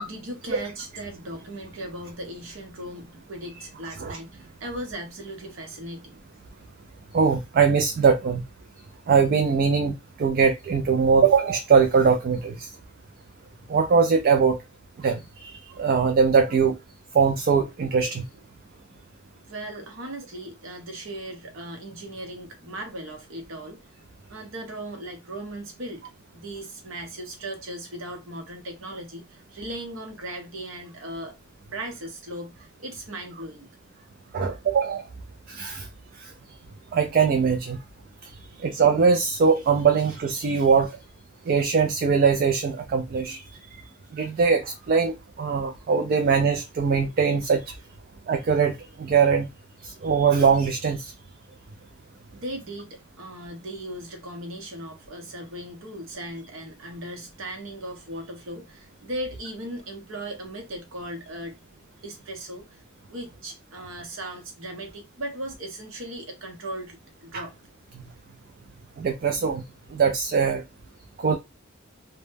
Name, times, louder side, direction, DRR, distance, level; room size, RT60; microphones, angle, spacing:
voice 1, 0.0-6.2 19.5-23.8 24.3-26.0 26.3-31.4 31.7-33.7 37.7-37.8 38.4-38.7 52.3-61.6 62.0-62.7 63.1-67.5, right 1 dB, 70° right, 0.8 m, -37 dB
voice 2, 7.1-8.4 9.1-12.7 13.7-14.6 15.0-16.8 17.1-18.2 34.3-35.0 35.5-35.9 36.9-37.8 38.6-40.9 41.5-43.4 44.1-47.6 48.3-49.5 49.8-51.1 67.3-67.4 69.0-69.6 69.9-70.6 71.2-71.3, right 5 dB, 45° right, 0.3 m, -21 dB
2.1 x 2.0 x 3.2 m
head